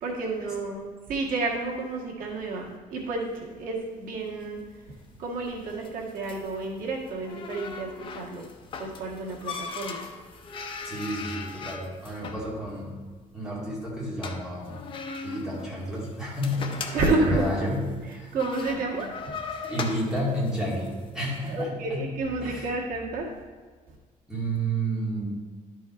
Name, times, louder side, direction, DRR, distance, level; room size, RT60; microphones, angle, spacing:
voice 1, 0.0-4.6 5.2-7.9 8.1-8.4 8.8-10.0 16.9-17.5 18.3-19.4 21.5-23.3, right 3 dB, 85° right, -1 dB, 1.5 m, -30 dB
sound 1, 4.3-21.5, left 5 dB, 40° left, 0.6 m, -39 dB
voice 2, 10.8-12.9 13.3-14.8 15.2-17.8 18.1-18.3 19.6-22.0 22.4-22.7 24.3-25.3, right 1 dB, 5° right, -7 dB, 2.2 m, -31 dB
11.0 x 4.7 x 4.2 m, 1.5 s
cardioid pair, 180°, 14 cm